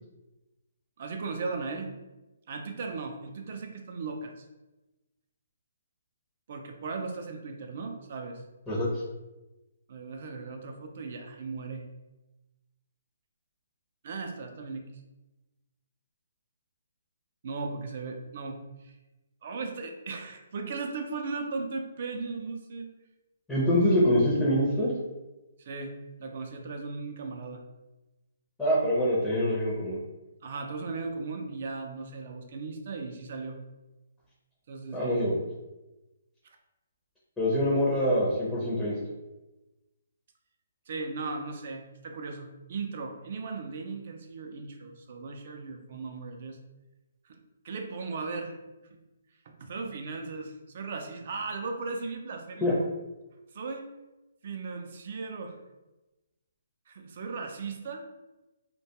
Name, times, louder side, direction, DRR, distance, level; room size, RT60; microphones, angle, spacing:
voice 1, 1.0-1.9 2.5-4.5 6.5-8.4 9.9-11.8 14.0-15.0 17.4-18.9 19.4-22.9 25.6-25.9 26.2-27.6 30.4-33.6 34.7-35.2 40.9-46.6 47.2-47.4 47.6-48.6 48.9-49.0 49.6-52.7 53.5-53.9 54.4-55.6 56.9-58.1, right 4 dB, 50° right, 4 dB, 0.4 m, -37 dB
voice 2, 8.7-9.0 23.5-24.9 28.6-30.0 34.9-35.3 37.4-38.9 52.6-52.7, equal, 5° left, -9 dB, 0.6 m, -25 dB
2.2 x 2.2 x 2.8 m, 1.0 s
hypercardioid pair, 155°, 0 cm